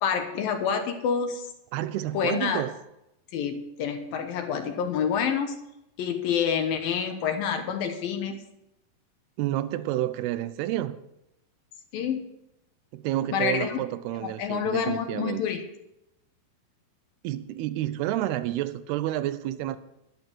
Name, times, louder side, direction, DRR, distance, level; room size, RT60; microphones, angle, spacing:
voice 1, 0.0-1.5 2.1-2.7 3.3-5.6 6.0-8.4 11.9-12.3 13.3-13.8 14.2-15.6, left 7 dB, 70° left, 2.6 m, -28 dB
voice 2, 1.7-2.7 9.4-11.0 12.9-15.4 17.2-19.8, right 14 dB, 80° right, 2.7 m, -29 dB
11.0 x 11.0 x 6.1 m
omnidirectional pair, 4.7 m